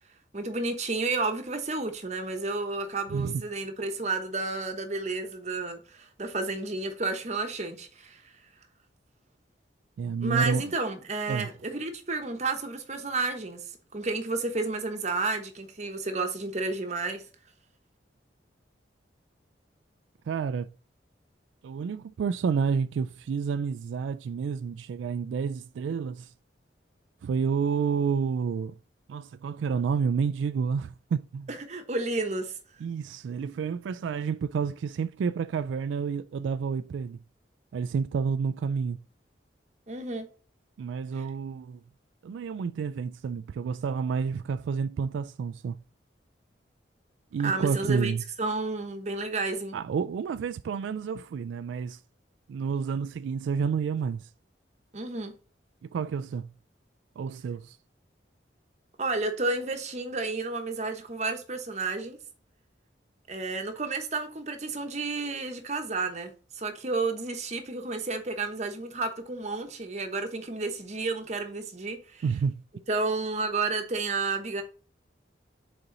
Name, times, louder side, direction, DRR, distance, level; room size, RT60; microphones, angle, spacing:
voice 1, 0.3-8.3 10.2-17.2 31.5-32.6 39.9-40.3 41.1-41.2 47.4-49.8 54.9-55.3 59.0-62.2 63.3-72.2 72.9-74.6, right 3 dB, 40° right, 1.0 m, -31 dB
voice 2, 10.0-10.6 11.3-11.5 20.3-20.7 21.6-26.3 27.2-28.7 29.1-31.5 32.8-37.2 37.7-39.0 40.8-41.8 42.2-45.8 47.3-48.2 49.7-52.0 52.5-54.3 55.8-56.5 57.2-57.8 72.2-72.6, right 6 dB, 85° right, 0.3 m, -29 dB
6.8 x 4.2 x 3.8 m
head